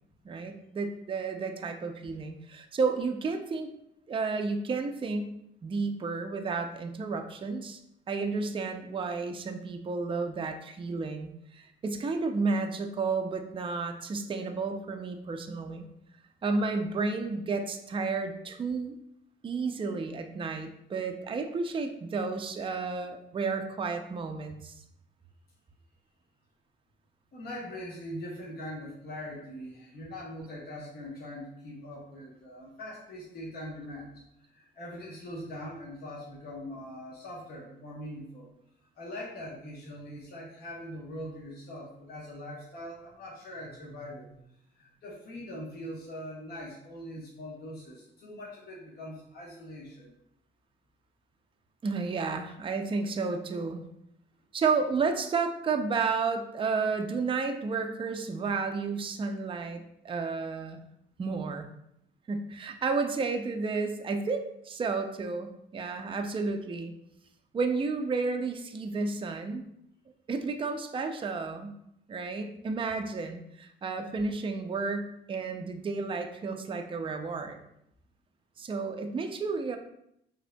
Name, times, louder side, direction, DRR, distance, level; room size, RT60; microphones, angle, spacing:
voice 1, 0.2-3.7 4.1-5.3 5.6-7.8 8.1-15.9 16.4-18.9 19.4-24.7 51.8-53.8 54.5-60.8 61.2-61.7 62.3-66.9 67.5-69.6 70.3-71.7 72.1-77.6 78.6-79.8, right 4 dB, 25° right, 5 dB, 0.4 m, -32 dB
voice 2, 27.3-34.1 34.4-38.5 39.0-50.1, left 1 dB, 50° left, -5 dB, 1.0 m, -42 dB
4.9 x 2.7 x 2.2 m, 0.76 s
cardioid pair, 90°, 20 cm